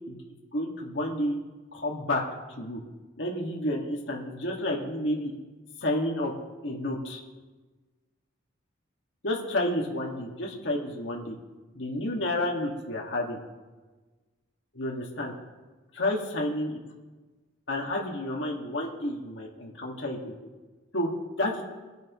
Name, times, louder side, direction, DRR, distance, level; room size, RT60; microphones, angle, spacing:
voice 1, 0.5-1.4 1.7-2.2 2.6-2.8 3.2-5.3 5.8-6.3 6.6-7.2 9.2-11.4 11.8-13.4 14.7-15.3 15.9-16.8 17.7-20.3 20.9-21.1 21.4-21.6, left 1 dB, 65° left, -1 dB, 2.1 m, -30 dB
22.5 x 9.3 x 3.2 m, 1.3 s
head